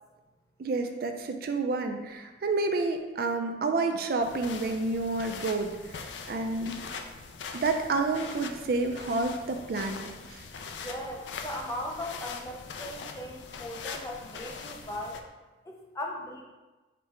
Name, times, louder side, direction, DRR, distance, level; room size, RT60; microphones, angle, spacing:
voice 1, 0.6-6.9 7.5-10.0 10.3-10.5, right 3 dB, 55° right, 5 dB, 0.3 m, -29 dB
sound 1, 4.2-15.2, left 5 dB, 80° left, 0.4 m, -42 dB
voice 2, 10.7-15.2 15.6-16.4, left 1 dB, 15° left, 0 dB, 0.5 m, -38 dB
5.1 x 2.2 x 4.4 m, 1.2 s
head